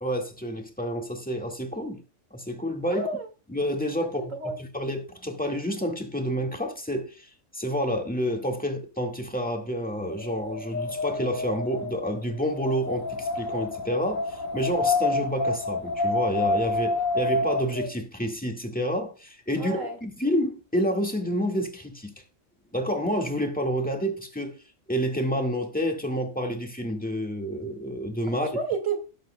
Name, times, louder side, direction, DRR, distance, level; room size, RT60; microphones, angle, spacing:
voice 1, 0.0-2.0 2.3-3.1 3.5-4.2 4.7-22.1 22.7-24.5 24.9-28.5, equal, 5° left, 1.7 m, -29 dB
voice 2, 2.9-3.3 4.2-4.6 19.6-20.0 28.3-29.0, right 4 dB, 75° right, 2.4 m, -31 dB
Wind, 9.9-17.9, left 2 dB, 75° left, 1.8 m, -28 dB
18.0 x 7.4 x 2.2 m
omnidirectional pair, 1.4 m